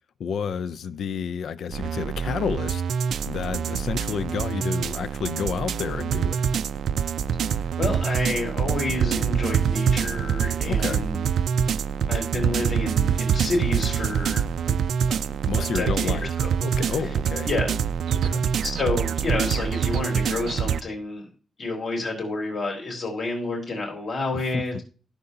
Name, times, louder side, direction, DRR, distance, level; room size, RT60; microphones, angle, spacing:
voice 1, 0.2-3.0 3.3-6.4 10.7-11.0 15.4-16.3 16.6-17.5 18.1-18.5 24.3-24.8, left 6 dB, 75° left, 0.5 m, -30 dB
sound 1, 1.7-20.8, right 7 dB, 85° right, 0.4 m, -25 dB
voice 2, 7.6-11.2 12.1-14.8 15.1-15.2 15.5-16.5 16.9-17.0 17.5-17.7 18.6-21.3 21.6-24.8, left 2 dB, 55° left, 3.6 m, -29 dB
13.5 x 6.7 x 2.7 m
wide cardioid pair, 115°, 0 cm